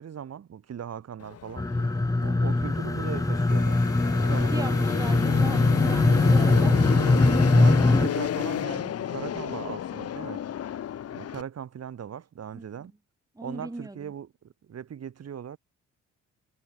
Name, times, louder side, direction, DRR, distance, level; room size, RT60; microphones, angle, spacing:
voice 1, 0.0-1.7 2.2-3.8 4.3-5.1 7.0-7.2 7.6-10.4 11.1-12.9 13.4-15.6, right 8 dB, 55° right, 6.3 m, -39 dB
Fixed-wing aircraft airplane, 1.2-11.4, left 10 dB, 55° left, 1.1 m, -31 dB
sound 1, 1.6-8.1, left 2 dB, 10° left, 1.2 m, -22 dB
sound 2, 3.5-8.7, left 13 dB, 80° left, 2.7 m, -45 dB
voice 2, 4.2-7.5 12.5-12.7 13.3-14.1, right 2 dB, 10° right, 3.3 m, -39 dB
cardioid pair, 90°, 30 cm